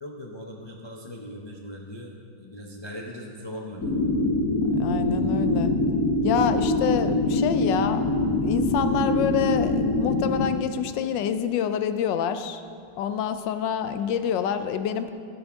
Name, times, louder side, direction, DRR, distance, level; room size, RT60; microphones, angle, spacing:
voice 1, 0.0-2.1 2.4-4.0 7.3-7.4, equal, 40° left, -1 dB, 0.4 m, -39 dB
sound 1, 3.8-10.5, left 2 dB, 55° left, 1.2 m, -24 dB
voice 2, 4.7-5.7 6.2-8.0 8.4-12.6 13.0-15.1, left 8 dB, 90° left, 10 dB, 1.3 m, -27 dB
12.5 x 9.9 x 3.5 m, 2.3 s
omnidirectional pair, 1.9 m